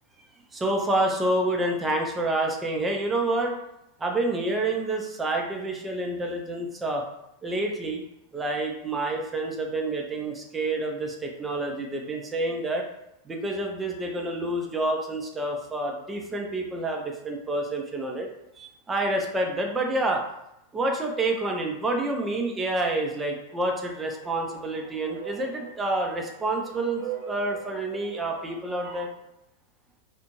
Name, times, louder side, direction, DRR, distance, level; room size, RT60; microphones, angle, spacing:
voice 1, 0.5-3.6 4.0-7.0 7.4-8.0 8.3-12.9 13.2-18.3 18.6-20.2 20.7-29.1, right 2 dB, 15° right, 1 dB, 0.5 m, -28 dB
sound 1, 23.5-29.1, right 8 dB, 50° right, 0.8 m, -42 dB
2.5 x 2.1 x 2.8 m, 0.84 s
figure-of-eight pair, 90°, 0 cm